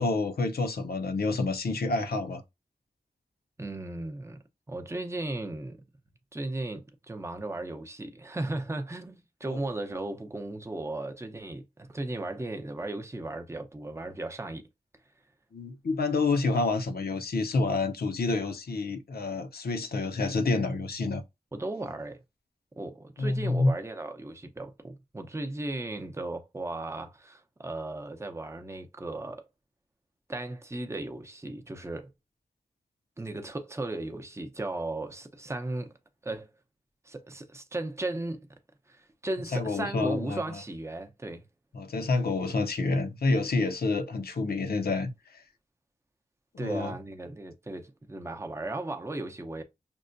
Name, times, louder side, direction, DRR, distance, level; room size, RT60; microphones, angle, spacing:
voice 1, 0.0-2.4 9.5-9.6 15.5-21.2 23.2-23.7 39.5-40.6 41.7-45.1 46.5-46.9, left 3 dB, 75° left, 0.6 m, -28 dB
voice 2, 3.6-4.4 4.7-5.8 6.3-14.6 21.5-22.2 22.8-29.4 30.3-32.1 33.2-35.9 36.2-36.5 37.0-38.5 38.9-41.4 46.6-49.6, right 2 dB, 15° right, 0.6 m, -36 dB
5.3 x 2.2 x 2.5 m
cardioid pair, 50°, 16 cm